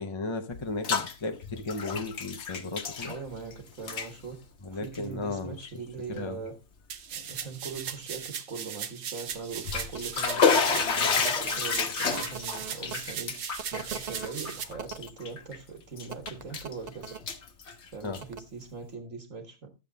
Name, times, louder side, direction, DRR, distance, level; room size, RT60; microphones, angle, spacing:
voice 1, 0.0-3.1 4.6-5.7 6.1-6.4 18.0-18.2, left 3 dB, 25° left, 0.7 m, -35 dB
Bathtub (filling or washing), 0.5-1.1 1.4-3.5 3.8-4.1 4.8-5.0 5.6-5.7 6.2-6.3 9.4-15.6 16.0-16.7 17.1-18.4, left 5 dB, 55° left, 1.3 m, -29 dB
voice 2, 3.1-6.5 7.1-13.4 13.7-17.2 17.9-19.7, right 5 dB, 60° right, 2.1 m, -41 dB
sound 1, 6.9-14.6, right 8 dB, 80° right, 1.4 m, -38 dB
sound 2, 9.9-10.0 10.5-13.0 13.6-15.1 16.1-17.2 18.2-18.4, right 6 dB, 35° right, 0.8 m, -41 dB
12.0 x 7.5 x 4.0 m
omnidirectional pair, 1.5 m